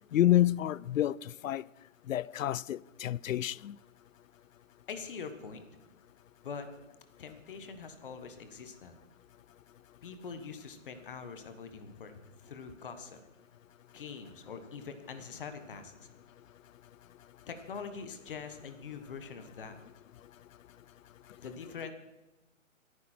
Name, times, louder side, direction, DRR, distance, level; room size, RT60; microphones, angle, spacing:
voice 1, 0.1-1.1 1.4-1.6 2.1-3.7, left 13 dB, 70° left, 0.5 m, -28 dB
voice 2, 4.9-5.7 6.4-6.7 7.2-9.0 10.0-13.2 13.9-15.9 17.5-19.8 21.4-21.9, left 5 dB, 40° left, 1.4 m, -44 dB
26.0 x 9.6 x 4.5 m
hypercardioid pair, 170°, 41 cm